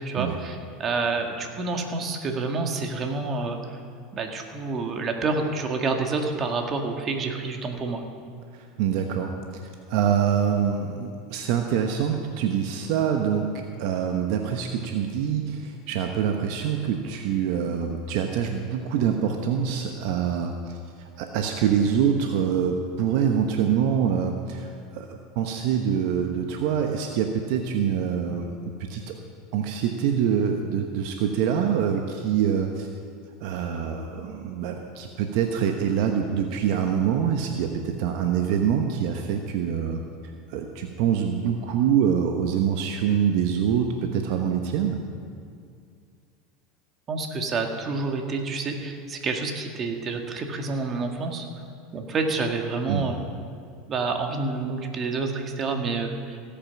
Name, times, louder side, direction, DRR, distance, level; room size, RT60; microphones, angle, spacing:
voice 1, 0.1-3.6 4.1-8.0 47.1-51.5 51.9-53.2 53.9-56.4, right 3 dB, 35° right, 3 dB, 1.8 m, -28 dB
voice 2, 8.5-9.3 9.9-20.8 21.2-29.1 29.5-32.9 33.4-40.0 40.5-45.0 52.9-53.1, right 8 dB, 65° right, 4 dB, 1.0 m, -25 dB
16.0 x 8.7 x 5.9 m, 2.3 s
supercardioid pair, 105°, 0 cm